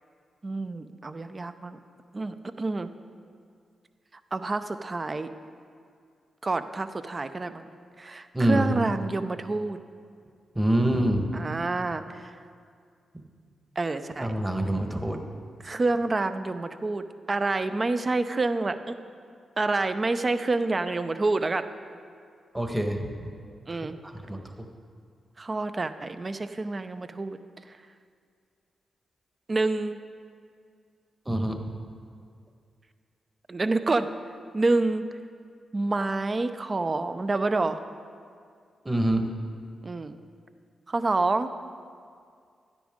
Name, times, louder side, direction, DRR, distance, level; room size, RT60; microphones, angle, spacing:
voice 1, 0.4-1.8 2.1-2.9 4.3-5.3 6.4-7.7 8.0-9.8 11.3-12.3 13.8-14.3 15.6-18.9 19.6-21.6 23.7-24.0 25.4-27.4 29.5-30.0 33.5-34.1 34.5-35.0 35.7-37.8 39.8-40.2 40.9-41.5, right 3 dB, 40° right, 10 dB, 0.7 m, -28 dB
voice 2, 8.3-8.7 10.5-11.3 14.2-15.2 22.5-23.1 24.3-24.4 31.3-31.6 38.8-39.2, right 1 dB, 15° right, 4 dB, 1.4 m, -25 dB
12.5 x 10.0 x 3.7 m, 2.2 s
supercardioid pair, 50°, 0 cm